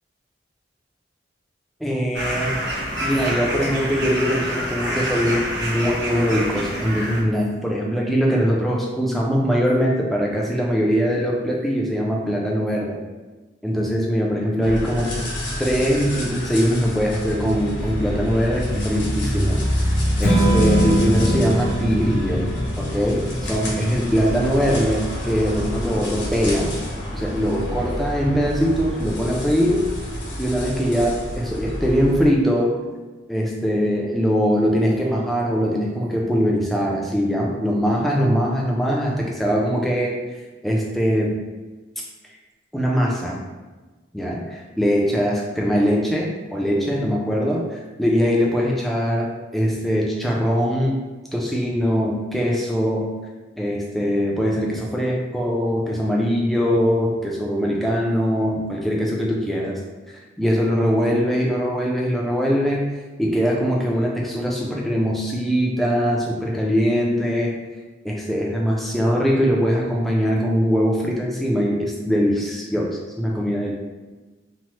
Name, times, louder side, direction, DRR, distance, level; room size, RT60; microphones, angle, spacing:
voice 1, 1.8-2.6 3.0-13.0 13.6-15.2 15.6-19.6 20.2-22.5 22.8-26.8 27.1-29.9 30.4-32.7 33.3-40.2 40.6-41.4 42.7-43.4 44.1-51.0 51.3-53.1 53.6-59.8 60.4-62.9 63.2-67.5 68.0-73.7, equal, ahead, -3 dB, 0.3 m, -22 dB
sound 1, 2.1-7.2, right 1 dB, 70° right, 0.6 m, -27 dB
sound 2, 14.6-32.3, equal, 75° left, 0.9 m, -27 dB
Strum, 20.2-26.5, right 1 dB, 55° left, 0.5 m, -25 dB
2.9 x 2.0 x 3.0 m, 1.2 s
head